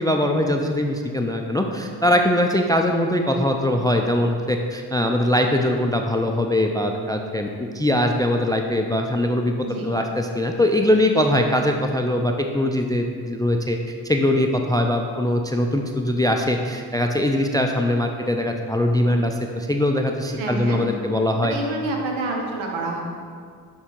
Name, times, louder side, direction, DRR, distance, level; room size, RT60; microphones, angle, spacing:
voice 1, 0.0-9.5 9.8-13.8 14.0-21.5, left 1 dB, 10° left, 4 dB, 0.4 m, -21 dB
voice 2, 9.6-9.9 20.4-20.8 21.4-23.0, right 2 dB, 70° right, 1 dB, 1.2 m, -28 dB
6.7 x 3.7 x 4.4 m, 2.1 s
hypercardioid pair, 45°, 49 cm